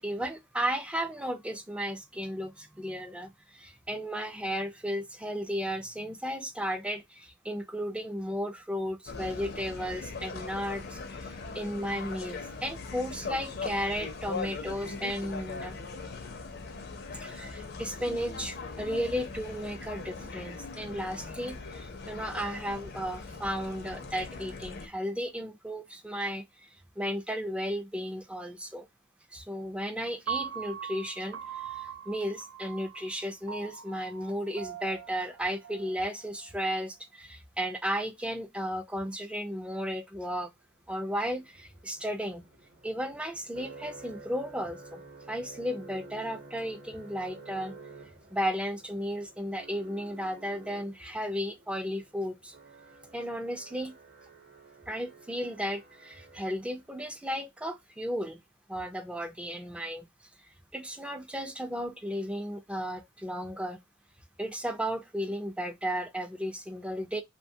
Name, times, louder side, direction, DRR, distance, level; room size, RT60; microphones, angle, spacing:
voice 1, 0.0-15.8 17.2-26.7 27.0-28.9 29.3-40.5 40.9-42.4 42.8-47.8 48.3-52.5 53.1-53.9 54.9-58.4 58.7-60.1 60.7-63.8 64.4-67.2, equal, 5° right, 0.4 m, -34 dB
sound 1, 9.1-24.9, left 4 dB, 50° left, 0.5 m, -40 dB
Piano, 30.3-36.4, right 8 dB, 70° right, 0.4 m, -41 dB
sound 2, 40.7-57.0, right 3 dB, 45° right, 0.8 m, -51 dB
2.9 x 2.2 x 2.6 m
head